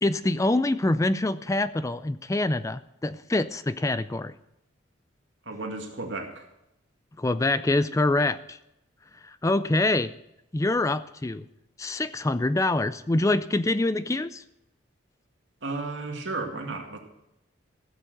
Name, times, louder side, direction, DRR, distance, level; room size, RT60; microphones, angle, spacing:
voice 1, 0.0-4.3 7.2-8.6 9.2-10.1 10.5-11.5 11.8-14.4, left 2 dB, 15° left, 14 dB, 0.4 m, -25 dB
voice 2, 5.5-6.4 15.6-17.0, right 3 dB, 65° right, 2 dB, 2.2 m, -33 dB
15.5 x 6.8 x 7.9 m, 0.85 s
head